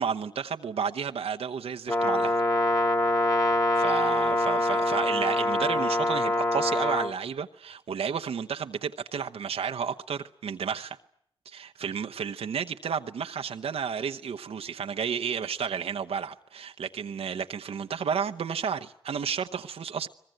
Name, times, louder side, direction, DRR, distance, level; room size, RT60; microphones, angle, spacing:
voice 1, 0.0-2.4 3.8-11.0 11.5-20.1, right 7 dB, 85° right, 0.9 m, -32 dB
Brass instrument, 1.9-7.1, left 1 dB, 35° left, 2.4 m, -25 dB
23.0 x 20.5 x 9.1 m
cardioid pair, 50°, 10 cm